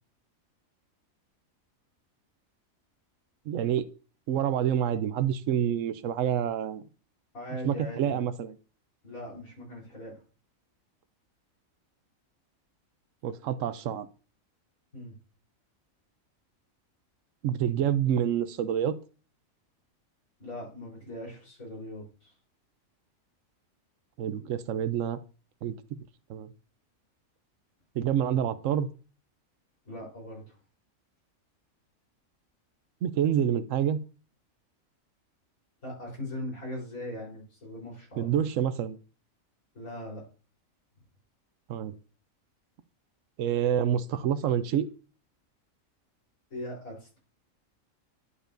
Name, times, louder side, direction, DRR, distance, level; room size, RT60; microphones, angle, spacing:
voice 1, 3.5-3.8 4.3-6.8 7.6-8.5 13.2-14.1 17.4-19.0 24.2-25.2 25.6-26.0 26.3-26.5 28.0-28.9 33.0-34.0 38.2-39.0 41.7-41.9 43.4-44.9, right 9 dB, 70° right, 12 dB, 0.9 m, -27 dB
voice 2, 7.3-8.3 9.0-10.2 14.9-15.1 20.4-22.3 29.8-30.6 35.8-38.3 39.7-40.2 46.5-47.2, left 1 dB, 85° left, -5 dB, 4.4 m, -40 dB
11.0 x 5.1 x 2.6 m, 0.36 s
omnidirectional pair, 1.4 m